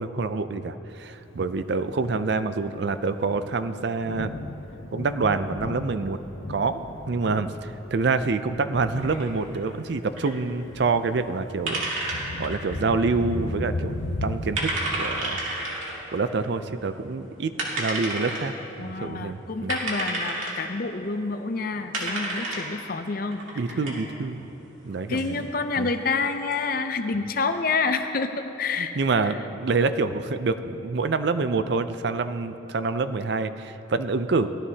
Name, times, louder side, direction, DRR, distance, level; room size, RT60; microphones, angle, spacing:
voice 1, 0.0-4.3 4.9-6.2 6.5-6.8 7.1-11.9 12.1-14.0 14.2-15.4 16.1-18.5 18.8-19.7 23.6-24.5 24.9-25.4 25.8-25.9 28.8-34.5, right 4 dB, 60° right, 11 dB, 0.4 m, -27 dB
Thunder, 1.1-14.8, left 2 dB, 80° left, 0.7 m, -36 dB
sound 1, 9.0-26.8, right 2 dB, 85° right, 2.3 m, -33 dB
voice 2, 18.8-23.8 25.1-28.9 29.2-29.4, left 4 dB, 45° left, 8 dB, 0.6 m, -28 dB
17.5 x 12.5 x 2.8 m, 3.0 s
head